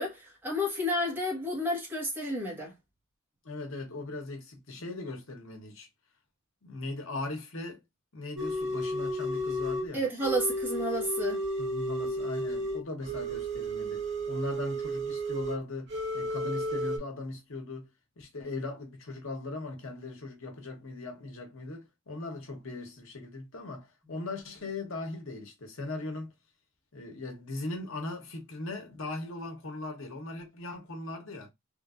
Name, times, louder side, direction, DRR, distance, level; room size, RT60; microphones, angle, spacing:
voice 1, 0.0-2.7 9.9-11.4, equal, 10° right, 1.1 m, -31 dB
voice 2, 3.4-5.9 6.6-7.8 8.1-10.0 11.6-17.9 18.2-26.3 26.9-31.5, left 2 dB, 70° left, 1.0 m, -39 dB
sound 1, 8.4-9.9 10.2-15.6 15.9-17.0, equal, 55° right, 1.0 m, -33 dB
3.3 x 2.5 x 2.4 m
head